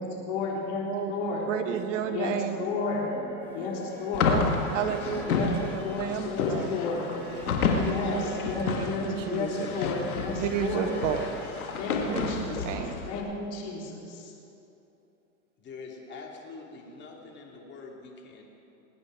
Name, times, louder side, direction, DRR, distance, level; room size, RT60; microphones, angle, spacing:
voice 1, 0.0-1.4 2.1-3.0 3.5-4.3 5.3-7.1 7.8-10.9 11.8-12.6 13.1-14.3, left 3 dB, 50° left, -2 dB, 3.7 m, -32 dB
voice 2, 0.9-2.7 3.0-3.1 4.2-4.5 4.7-6.7 8.1-8.8 9.0-9.7 10.4-11.3 12.1-13.1, right 9 dB, 60° right, 7 dB, 1.4 m, -32 dB
sound 1, 1.9-11.5 11.8-11.9, right 1 dB, 25° right, 1.8 m, -49 dB
sound 2, 3.4-13.0, equal, 5° left, 2.5 m, -49 dB
sound 3, 4.1-13.2, left 4 dB, 85° left, 1.8 m, -30 dB
voice 3, 6.3-6.8 7.1-7.4 7.9-8.5 15.6-18.5, left 4 dB, 25° left, 0 dB, 2.5 m, -44 dB
21.0 x 9.5 x 4.9 m, 2.9 s
hypercardioid pair, 120°, 42 cm